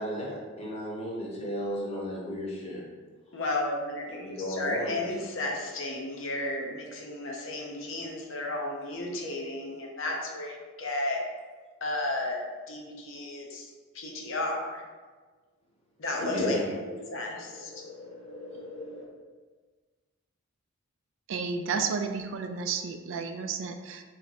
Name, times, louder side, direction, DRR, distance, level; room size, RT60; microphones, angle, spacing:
voice 1, 0.0-2.8 4.1-5.1 16.1-19.1, equal, 30° left, -4 dB, 0.9 m, -35 dB
voice 2, 3.3-11.2 11.8-12.4 12.7-14.8 16.0-16.8 17.1-17.7, left 2 dB, 60° left, -1 dB, 0.7 m, -33 dB
voice 3, 21.3-24.0, right 5 dB, 60° right, 6 dB, 0.3 m, -32 dB
3.4 x 3.1 x 4.0 m, 1.4 s
head